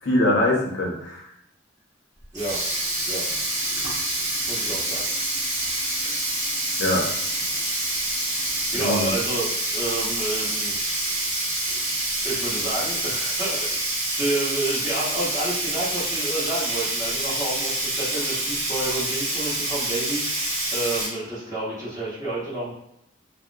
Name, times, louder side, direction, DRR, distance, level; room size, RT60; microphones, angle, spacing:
voice 1, 0.0-1.3 6.8-7.1 8.8-9.1, left 1 dB, 80° left, -1 dB, 0.7 m, -22 dB
Sink (filling or washing), 2.2-21.1, right 1 dB, 40° right, 0.9 m, -27 dB
voice 2, 2.3-2.6 3.1-3.3 4.5-5.1 8.7-10.7 12.2-13.8 14.2-22.7, right 2 dB, 20° right, -9 dB, 1.0 m, -30 dB
2.8 x 2.0 x 2.4 m, 0.78 s
head